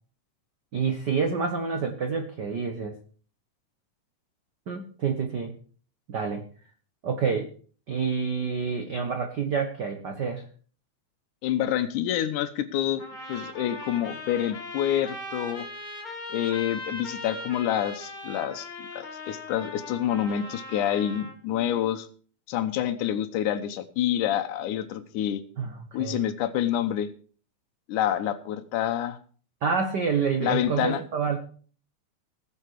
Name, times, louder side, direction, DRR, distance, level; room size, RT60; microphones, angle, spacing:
voice 1, 0.7-3.0 4.7-5.5 6.1-6.5 7.0-7.5 7.9-10.4 25.6-26.2 29.6-31.4, right 5 dB, 70° right, 5 dB, 0.9 m, -28 dB
voice 2, 11.4-13.0 13.3-15.7 16.3-22.1 22.5-25.4 25.9-27.1 27.9-29.2 30.4-31.0, left 11 dB, 75° left, 7 dB, 2.4 m, -27 dB
sound 1, 13.0-21.4, left 2 dB, 15° left, 1.9 m, -39 dB
19.5 x 6.8 x 4.7 m, 0.43 s
omnidirectional pair, 3.7 m